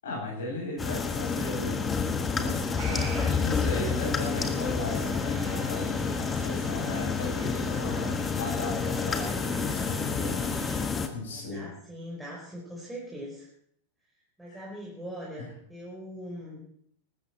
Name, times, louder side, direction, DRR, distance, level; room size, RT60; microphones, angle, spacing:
voice 1, 0.0-10.5 11.1-11.7 14.5-14.6, left 2 dB, 65° left, -2 dB, 7.4 m, -36 dB
sound 1, 0.8-11.1, left 5 dB, 20° left, 1.5 m, -29 dB
sound 2, 2.8-10.8, right 5 dB, 45° right, 5.4 m, -45 dB
voice 2, 11.2-13.5 14.4-16.6, equal, 5° right, -5 dB, 4.2 m, -41 dB
20.0 x 12.5 x 4.3 m, 0.68 s
figure-of-eight pair, 90°, 0 cm